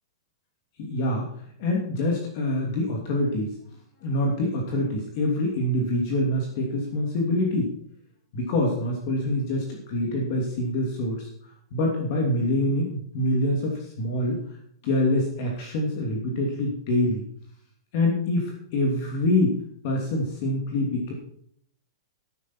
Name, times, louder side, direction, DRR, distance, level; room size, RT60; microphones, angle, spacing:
voice 1, 0.8-1.3 1.6-3.5 4.0-7.7 8.3-14.4 14.8-17.2 17.9-19.6 19.8-21.1, left 1 dB, 35° left, 0 dB, 2.9 m, -25 dB
12.5 x 12.0 x 4.5 m, 0.64 s
supercardioid pair, 180°, 2 cm